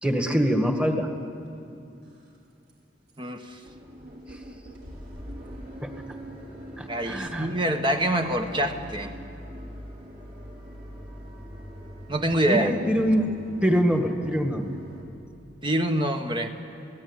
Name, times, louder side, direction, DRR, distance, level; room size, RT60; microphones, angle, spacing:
voice 1, 0.0-1.1 5.8-6.0 6.8-7.5 12.5-13.3 13.6-14.7, equal, 5° right, 5 dB, 1.8 m, -24 dB
sound 1, 1.4-1.5 2.0-2.4 2.7-2.8 3.1-3.2 3.5-15.0, equal, 55° right, 5.3 m, -43 dB
voice 2, 3.2-3.6 6.9-9.1 12.1-12.7 15.6-16.5, right 1 dB, 25° right, 5 dB, 1.4 m, -25 dB
28.0 x 18.0 x 9.9 m, 2.5 s
head